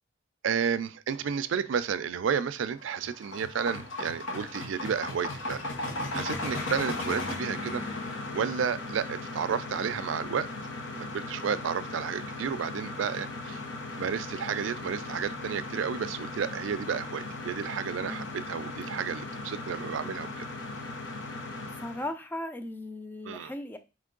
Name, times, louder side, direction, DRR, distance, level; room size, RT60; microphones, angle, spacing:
voice 1, 0.4-5.6 6.1-7.8 8.3-10.5 10.9-13.6 14.0-20.4 23.2-23.5, right 7 dB, 90° right, 14 dB, 0.4 m, -32 dB
sound 1, 2.7-22.1, left 2 dB, 85° left, 1.0 m, -37 dB
voice 2, 18.0-18.5 21.8-23.8, left 1 dB, 10° left, 8 dB, 0.4 m, -37 dB
4.4 x 3.1 x 3.7 m, 0.30 s
head